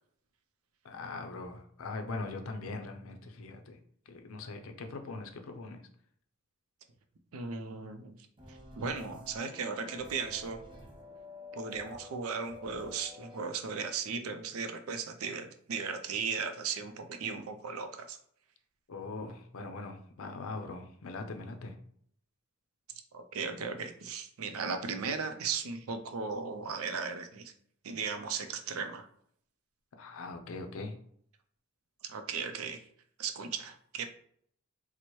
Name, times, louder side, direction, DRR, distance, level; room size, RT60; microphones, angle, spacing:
voice 1, 0.8-3.8 4.1-5.8 18.9-21.8 30.0-30.9, left 3 dB, 75° left, 5 dB, 0.5 m, -41 dB
voice 2, 7.3-8.2 8.8-10.6 11.5-18.2 23.1-27.5 27.8-29.1 32.1-32.8 33.2-34.1, right 5 dB, 85° right, 7 dB, 0.5 m, -36 dB
sound 1, 8.4-13.4, left 2 dB, 25° right, 0.6 m, -49 dB
4.4 x 2.0 x 3.0 m, 0.65 s
head